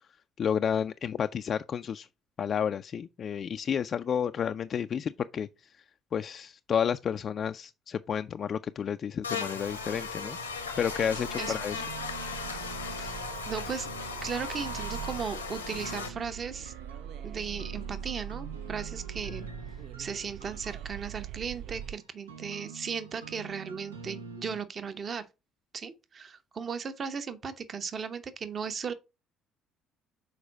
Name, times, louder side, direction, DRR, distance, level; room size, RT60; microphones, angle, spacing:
voice 1, 0.4-2.1 2.4-5.8 6.1-10.4 10.8-11.8, left 8 dB, 40° left, 0.3 m, -31 dB
Buzz, 9.2-16.1, left 4 dB, 85° left, 0.9 m, -37 dB
sound 1, 9.6-21.9, right 9 dB, 55° right, 0.3 m, -43 dB
sound 2, 9.9-24.6, right 4 dB, 80° right, 0.7 m, -47 dB
voice 2, 11.4-11.8 13.0-13.2 13.5-13.9 14.2-16.7 17.2-19.5 20.0-25.2 25.7-28.9, right 6 dB, 35° right, 0.9 m, -36 dB
6.5 x 4.5 x 4.0 m
figure-of-eight pair, 50°, 0 cm